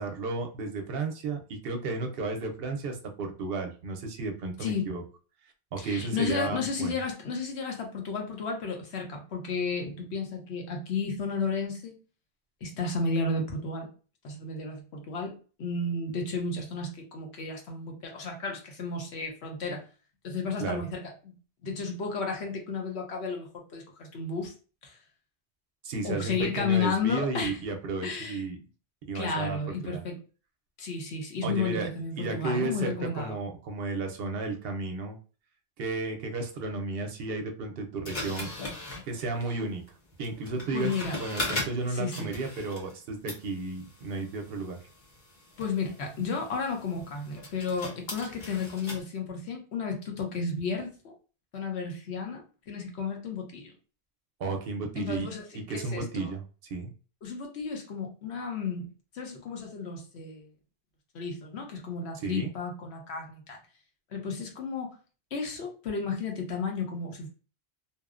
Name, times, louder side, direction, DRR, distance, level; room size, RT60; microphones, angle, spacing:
voice 1, 0.0-5.0 5.7-6.9 20.6-20.8 25.8-28.6 29.1-29.6 29.8-30.0 31.4-31.9 32.2-35.2 35.8-38.5 39.0-39.8 40.2-44.8 54.4-55.3 55.7-56.4 56.7-56.9 62.2-62.5, right 3 dB, 65° right, 4 dB, 0.7 m, -33 dB
voice 2, 5.8-12.0 12.6-13.9 14.2-19.8 20.2-21.3 21.6-24.5 24.8-25.0 26.0-27.6 28.0-28.4 29.1-30.2 30.8-33.3 40.7-41.2 41.9-42.3 45.6-51.1 51.5-53.7 55.0-56.3 57.2-60.5 61.1-63.6 64.1-64.9 65.3-67.3, left 4 dB, 80° left, 2 dB, 1.0 m, -33 dB
sound 1, 38.1-43.0 43.3-49.0, left 2 dB, 45° left, 0.9 m, -39 dB
2.8 x 2.0 x 2.3 m, 0.36 s
omnidirectional pair, 1.1 m